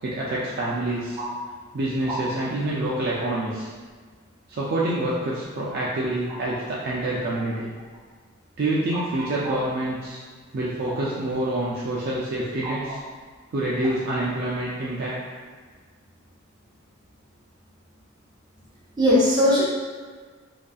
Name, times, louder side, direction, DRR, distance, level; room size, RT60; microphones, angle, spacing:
voice 1, 0.0-1.2 1.7-3.7 4.5-7.7 8.6-10.2 10.5-13.0 13.5-15.2, right 1 dB, 50° right, -6 dB, 0.3 m, -27 dB
voice 2, 19.0-19.6, left 1 dB, 20° right, -9 dB, 0.7 m, -20 dB
2.6 x 2.3 x 2.3 m, 1.5 s
head